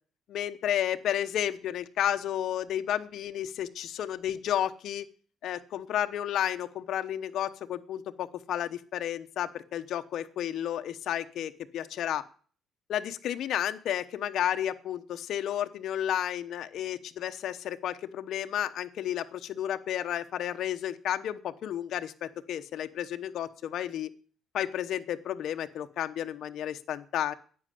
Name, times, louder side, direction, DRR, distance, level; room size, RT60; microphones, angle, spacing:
voice 1, 0.3-5.1 5.4-12.2 12.9-24.1 24.5-27.3, left 11 dB, 65° left, 8 dB, 1.1 m, -32 dB
11.0 x 8.8 x 8.4 m, 0.44 s
cardioid pair, 140°, 0 cm